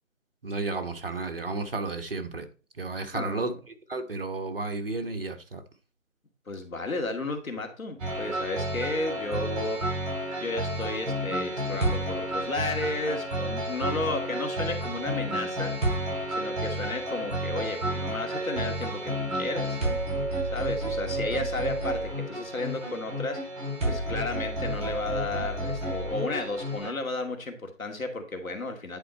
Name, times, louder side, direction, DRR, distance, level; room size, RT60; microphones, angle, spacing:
voice 1, 0.4-2.5 2.8-3.5 3.9-5.6, right 3 dB, 45° right, 1.1 m, -32 dB
voice 2, 3.1-3.5 6.5-9.8 10.4-15.8 16.3-19.8 20.5-23.5 23.9-29.0, left 2 dB, 75° left, 2.4 m, -33 dB
sound 1, 8.0-26.9, right 1 dB, 25° right, 4.2 m, -31 dB
10.5 x 4.4 x 4.4 m
figure-of-eight pair, 170°, 41 cm